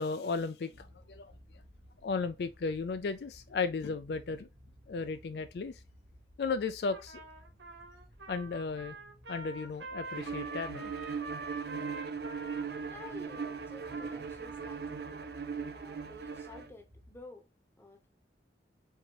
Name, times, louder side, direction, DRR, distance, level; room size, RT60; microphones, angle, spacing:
voice 1, 0.0-1.3 2.0-4.5 4.9-5.8 6.4-7.2 8.3-9.0 9.3-10.9, left 4 dB, 65° left, 0.4 m, -35 dB
sound 1, 0.7-17.2, equal, 40° right, 0.9 m, -58 dB
Trumpet, 6.9-15.2, right 3 dB, 85° right, 1.3 m, -46 dB
Bowed string instrument, 10.1-16.7, right 5 dB, 60° right, 0.5 m, -39 dB
voice 2, 12.9-17.5 17.8-18.1, left 2 dB, 15° left, 0.8 m, -52 dB
4.5 x 3.9 x 2.9 m
head